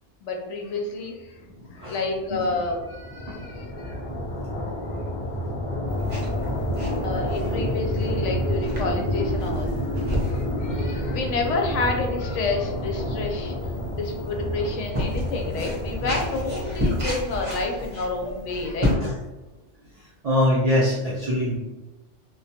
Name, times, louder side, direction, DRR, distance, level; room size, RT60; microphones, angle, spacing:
voice 1, 0.2-1.4 1.7-4.0 7.0-9.8 10.3-13.5 13.9-19.0, left 3 dB, 80° left, 2 dB, 0.9 m, -29 dB
voice 2, 1.4-2.0 2.3-2.4 3.3-3.4 3.9-4.0 9.9-10.1 17.5-17.6 18.9-19.2 19.9-21.6, left 1 dB, 70° right, -4 dB, 0.3 m, -25 dB
sound 1, 1.5-17.7, left 1 dB, 50° left, 0.4 m, -29 dB
sound 2, 5.9-18.9, left 1 dB, 35° right, 0.7 m, -32 dB
2.2 x 2.2 x 2.7 m, 1.1 s
omnidirectional pair, 1.3 m